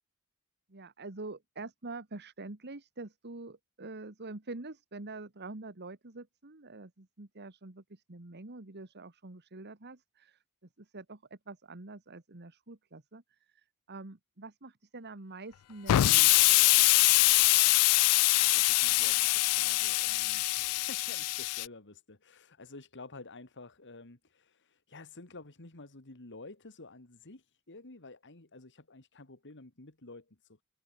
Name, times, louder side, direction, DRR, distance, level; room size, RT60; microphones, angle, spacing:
voice 1, 0.7-16.5, right 2 dB, 50° right, 1.7 m, -46 dB
Explosion, 15.9-21.7, left 19 dB, 85° left, 0.4 m, -24 dB
voice 2, 18.0-30.6, left 3 dB, 55° left, 2.4 m, -51 dB
head